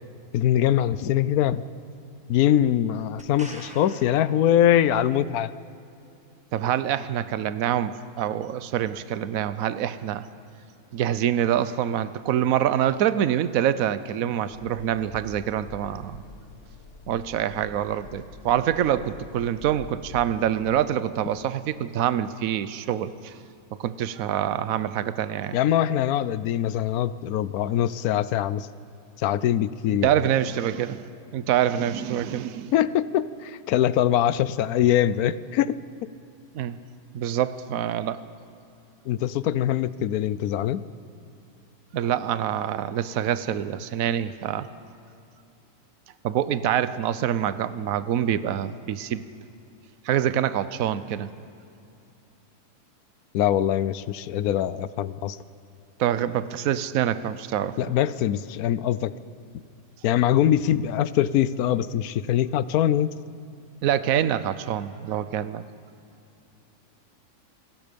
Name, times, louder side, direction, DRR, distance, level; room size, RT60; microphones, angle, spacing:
voice 1, 0.3-1.6 2.3-5.5 25.5-28.7 29.2-30.1 32.7-36.1 39.1-40.8 53.3-55.4 57.8-59.1 60.0-63.1, left 11 dB, 75° left, 16 dB, 1.1 m, -23 dB
sound 1, 3.2-5.2 8.8-8.9, right 1 dB, 5° right, 1.5 m, -45 dB
voice 2, 6.5-10.3 10.9-16.2 17.1-23.3 23.8-25.6 29.9-31.0 31.3-32.7 36.5-36.8 37.1-38.2 41.9-44.7 46.2-49.2 50.0-51.3 56.0-57.8 63.8-65.6, right 10 dB, 70° right, 14 dB, 1.1 m, -25 dB
sound 2, 14.5-20.3, left 4 dB, 50° left, 1.6 m, -45 dB
27.5 x 18.5 x 5.2 m, 2.7 s
omnidirectional pair, 1.6 m